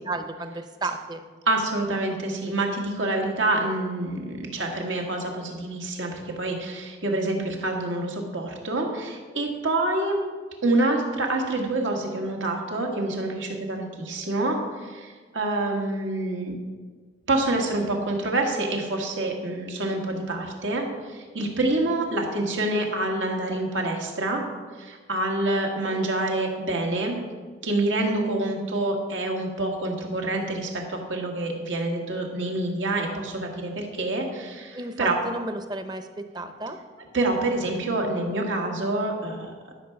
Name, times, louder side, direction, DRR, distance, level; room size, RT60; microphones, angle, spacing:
voice 1, 0.1-1.2 25.7-26.0 34.7-36.8, right 2 dB, 20° right, 8 dB, 0.6 m, -33 dB
voice 2, 1.5-10.3 10.6-16.6 17.3-24.4 24.8-27.2 27.6-35.2 37.1-39.7, right 2 dB, 90° right, 1 dB, 1.8 m, -27 dB
13.0 x 6.0 x 5.9 m, 1.5 s
head